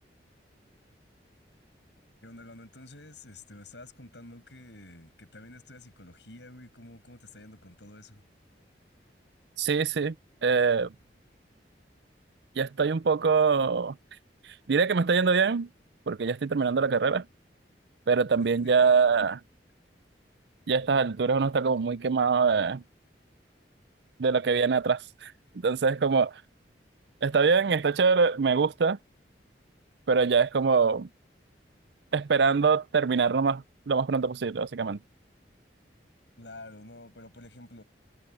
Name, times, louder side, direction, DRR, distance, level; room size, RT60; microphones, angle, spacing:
voice 1, 2.2-8.2 18.6-18.9 36.4-37.8, left 2 dB, 80° left, 6.8 m, -49 dB
voice 2, 9.6-10.1 10.4-10.9 12.6-14.0 14.7-15.7 16.1-17.2 18.1-19.4 20.7-22.8 24.2-25.3 25.6-26.3 27.2-29.0 30.1-31.1 32.1-35.0, right 5 dB, 70° right, 0.5 m, -24 dB
head